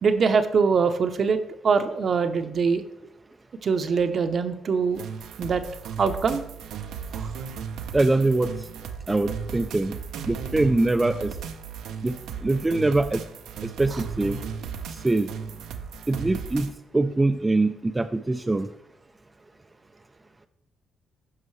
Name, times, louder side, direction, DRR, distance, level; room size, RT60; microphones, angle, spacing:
voice 1, 0.0-1.4 1.6-2.8 3.6-5.0 5.4-5.6 6.0-6.4 7.1-7.3, right 5 dB, 50° right, 9 dB, 0.7 m, -23 dB
sound 1, 4.9-16.7, right 7 dB, 85° right, 0.6 m, -36 dB
voice 2, 7.9-8.5 9.1-10.0 10.3-11.4 12.0-13.2 13.6-14.4 15.0-15.3 16.1-18.7, right 2 dB, 15° right, 7 dB, 0.3 m, -23 dB
14.5 x 5.5 x 3.2 m, 0.84 s
cardioid pair, 90°, 0 cm